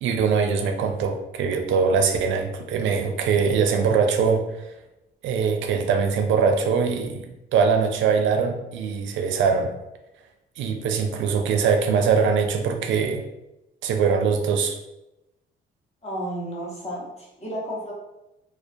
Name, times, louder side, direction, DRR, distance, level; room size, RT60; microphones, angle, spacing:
voice 1, 0.0-4.4 5.2-9.7 10.6-13.2 13.8-14.8, right 5 dB, 75° right, 5 dB, 0.4 m, -22 dB
voice 2, 16.0-17.9, right 1 dB, 35° left, -4 dB, 0.9 m, -32 dB
2.2 x 2.2 x 2.5 m, 0.93 s
cardioid pair, 90°, 20 cm